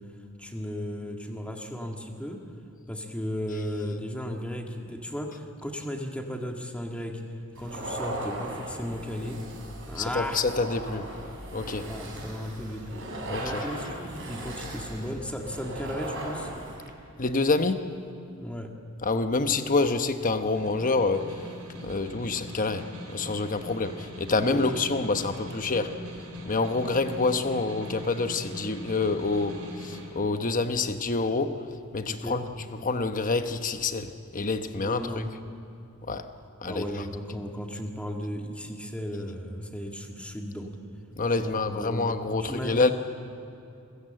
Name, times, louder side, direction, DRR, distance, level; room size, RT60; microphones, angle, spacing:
voice 1, 0.4-2.4 2.9-7.2 7.6-9.4 9.9-10.4 11.9-13.0 13.4-16.5 18.4-18.7 24.5-24.6 32.1-32.4 34.8-35.3 36.7-40.7 41.4-42.9, equal, 5° left, 1.8 m, -35 dB
sound 1, 7.5-16.9, right 1 dB, 60° right, 5.8 m, -38 dB
voice 2, 10.0-11.1 11.5-11.9 13.3-13.6 17.2-18.0 19.0-21.5 21.8-26.0 26.5-32.5 32.8-35.2 36.1-36.3 36.6-36.8 41.2-42.9, left 3 dB, 35° left, 1.0 m, -27 dB
Snare drum, 20.5-30.1, equal, 80° right, 5.0 m, -42 dB
28.5 x 15.5 x 7.8 m
head